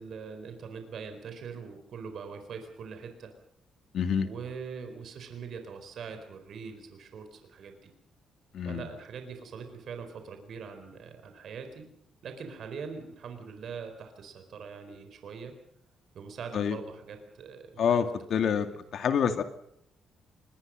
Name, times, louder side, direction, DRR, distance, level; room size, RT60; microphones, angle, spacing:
voice 1, 0.0-3.3 4.2-7.9 8.6-11.8 12.2-15.5 16.1-18.0 18.3-18.6, right 5 dB, 60° right, 7 dB, 4.3 m, -42 dB
voice 2, 3.9-4.3 8.5-8.8 16.5-16.8 17.8-18.7 18.9-19.4, left 7 dB, 65° left, 7 dB, 2.3 m, -27 dB
25.0 x 21.0 x 6.4 m, 0.73 s
cardioid pair, 90°, 0 cm